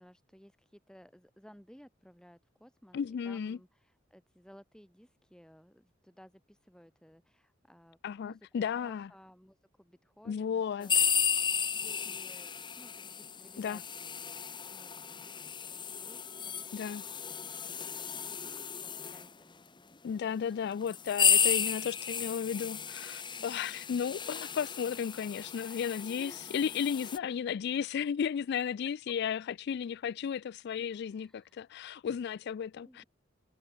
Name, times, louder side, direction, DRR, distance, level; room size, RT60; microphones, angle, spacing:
voice 1, 0.0-11.0 11.4-15.0 15.4-16.9 17.2-18.4 18.8-19.8 20.4-20.7 23.4-23.8 26.2-26.6 30.9-31.7 32.8-33.1, equal, 5° left, 4.6 m, -58 dB
voice 2, 2.9-3.6 8.0-9.1 10.3-11.1 13.6-13.8 16.7-17.0 20.0-33.0, left 7 dB, 60° left, 0.3 m, -34 dB
sound 1, 10.8-19.3 20.1-20.2 20.8-27.2, left 7 dB, 25° left, 1.4 m, -33 dB
head